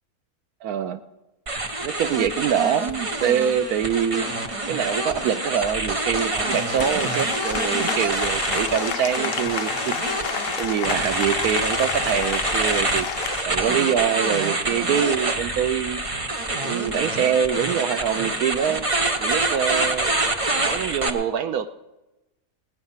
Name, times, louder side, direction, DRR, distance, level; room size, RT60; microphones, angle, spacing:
voice 1, 0.6-1.0 1.8-4.3 4.7-10.2 10.6-13.1 13.4-16.0 16.6-18.9 19.2-20.1 20.6-21.7, right 8 dB, 80° right, 10 dB, 1.1 m, -24 dB
sound 1, 1.5-21.1, right 2 dB, 25° right, 0.9 m, -26 dB
Applause, 4.3-13.4, left 8 dB, 65° left, 0.5 m, -31 dB
17.5 x 10.0 x 5.6 m, 1.0 s
omnidirectional pair, 1.6 m